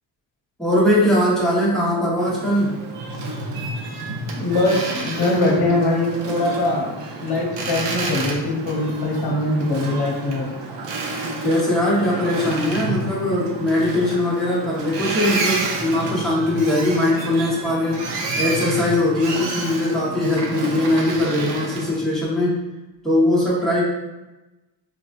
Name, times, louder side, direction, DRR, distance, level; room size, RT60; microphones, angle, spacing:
voice 1, 0.6-2.8 3.1-3.2 11.4-22.5 23.0-23.9, left 1 dB, ahead, -8 dB, 1.2 m, -20 dB
Boat Water vehicle, 2.2-22.0, right 2 dB, 70° right, 0.7 m, -30 dB
voice 2, 4.3-6.9 7.2-10.5, left 2 dB, 55° left, -3 dB, 1.0 m, -22 dB
3.9 x 2.4 x 2.6 m, 1.1 s
cardioid pair, 85°, 45 cm